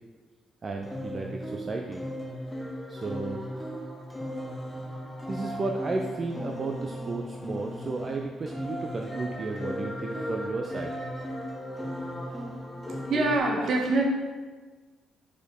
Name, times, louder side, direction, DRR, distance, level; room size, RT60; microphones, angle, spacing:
voice 1, 0.6-2.0 2.9-3.6 5.3-11.2 12.4-12.5, right 3 dB, 35° right, 2 dB, 0.5 m, -34 dB
sound 1, 0.8-13.4, equal, 10° left, 0.9 m, -36 dB
voice 2, 13.1-14.0, right 2 dB, 60° right, 1 dB, 1.2 m, -24 dB
5.1 x 4.3 x 5.2 m, 1.4 s
cardioid pair, 90°, 0 cm